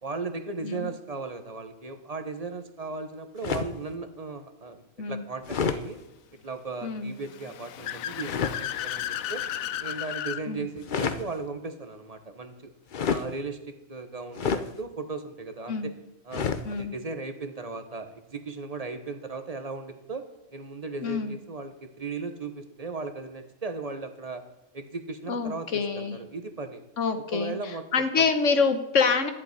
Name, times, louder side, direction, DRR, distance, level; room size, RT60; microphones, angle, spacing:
voice 1, 0.0-6.0 6.4-9.4 9.8-12.7 13.0-15.9 16.2-24.4 24.7-26.8 27.2-28.2, right 4 dB, 30° right, 8 dB, 1.2 m, -37 dB
sound 1, 3.4-3.8 5.4-5.8 8.2-8.6 10.8-11.2 12.9-13.3 14.3-14.7 16.3-16.7, left 6 dB, 45° left, 0.8 m, -28 dB
voice 2, 6.8-7.1 10.5-10.7 15.7-15.9 16.6-16.9 21.0-21.3 25.3-26.2 27.0-27.5 27.9-29.3, left 5 dB, 65° left, 8 dB, 1.6 m, -26 dB
Car / Accelerating revving vroom, 7.2-10.4, left 11 dB, 85° left, 1.1 m, -34 dB
11.5 x 7.5 x 9.6 m, 0.90 s
omnidirectional pair, 1.4 m